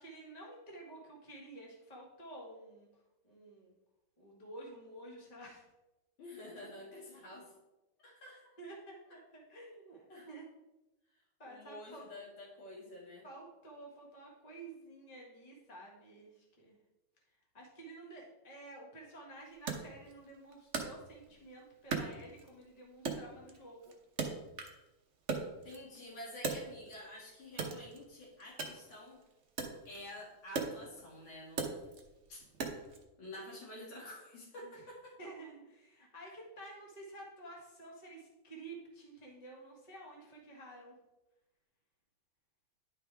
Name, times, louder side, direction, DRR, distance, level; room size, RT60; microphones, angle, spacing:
voice 1, 0.0-2.9 3.2-3.7 4.2-5.6 8.6-10.4 11.4-12.1 13.2-16.7 17.5-23.9 34.6-34.8 35.2-40.9, right 2 dB, 20° left, -2 dB, 1.5 m, -51 dB
voice 2, 6.2-7.5 8.0-8.5 9.1-9.2 10.1-10.3 11.4-13.3 25.6-29.2 29.9-31.7 32.3-32.4 33.2-35.2, left 1 dB, 90° left, -4 dB, 3.0 m, -49 dB
Wood, 19.7-21.4 21.9-22.7 23.0-24.9 25.1-27.1 27.5-33.0, right 4 dB, 50° right, 0.9 m, -40 dB
10.5 x 4.7 x 3.4 m, 1.0 s
omnidirectional pair, 2.3 m